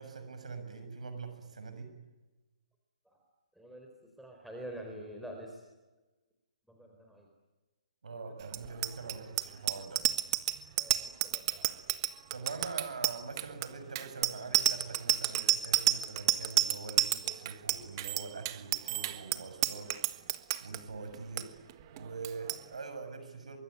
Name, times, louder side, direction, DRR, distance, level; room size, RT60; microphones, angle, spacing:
voice 1, 0.0-1.9 8.0-10.0 12.3-19.9 20.6-21.5 21.9-23.6, right 4 dB, 85° right, 8 dB, 6.7 m, -43 dB
voice 2, 3.6-3.9 4.2-5.6 6.7-7.3 10.8-11.6, right 1 dB, ahead, 1 dB, 4.0 m, -46 dB
Bicycle bell, 8.5-20.8 21.1-21.4 21.7-22.0 22.2-22.6, right 15 dB, 40° right, 1.6 m, -30 dB
24.0 x 23.5 x 9.6 m, 1.2 s
hypercardioid pair, 145°, 4 cm